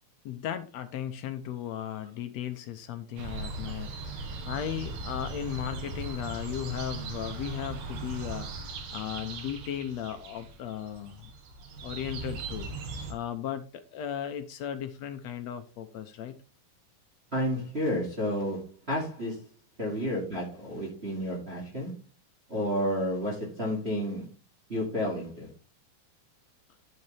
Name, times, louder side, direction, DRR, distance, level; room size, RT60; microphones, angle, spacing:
voice 1, 0.2-11.3 11.8-12.7 13.1-16.3, left 10 dB, 75° left, 1.7 m, -36 dB
sound 1, 3.2-13.1, right 3 dB, 80° right, 3.1 m, -39 dB
voice 2, 17.3-19.4 19.8-21.9 22.5-24.3 24.7-25.5, equal, 20° right, 2.1 m, -31 dB
10.5 x 7.0 x 3.4 m
omnidirectional pair, 3.8 m